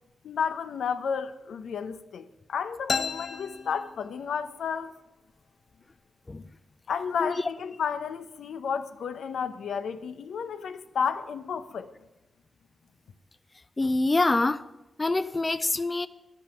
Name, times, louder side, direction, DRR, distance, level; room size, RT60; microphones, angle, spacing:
voice 1, 0.2-4.9 6.9-11.9, left 6 dB, 85° left, 0.7 m, -32 dB
sound 1, 2.9-4.6, left 5 dB, 55° left, 0.8 m, -33 dB
voice 2, 13.8-14.6 15.0-16.1, left 2 dB, 25° left, 0.5 m, -25 dB
12.0 x 10.5 x 5.9 m
cardioid pair, 75°, 0 cm